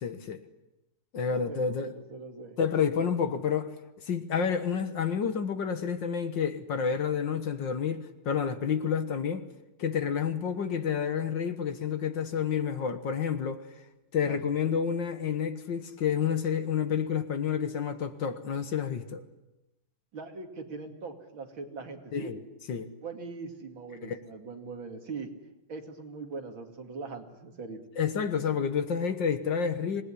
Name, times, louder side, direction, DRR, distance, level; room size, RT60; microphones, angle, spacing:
voice 1, 0.0-0.4 1.1-1.9 2.6-3.8 4.0-9.5 9.8-13.6 14.1-19.2 22.1-22.4 22.7-22.9 24.0-24.2 28.0-30.0, left 7 dB, 60° left, 1.9 m, -29 dB
voice 2, 1.2-2.6 14.2-14.4 20.1-22.3 23.0-25.3 25.7-27.8, right 4 dB, 65° right, 3.2 m, -41 dB
26.5 x 19.5 x 9.9 m
omnidirectional pair, 2.4 m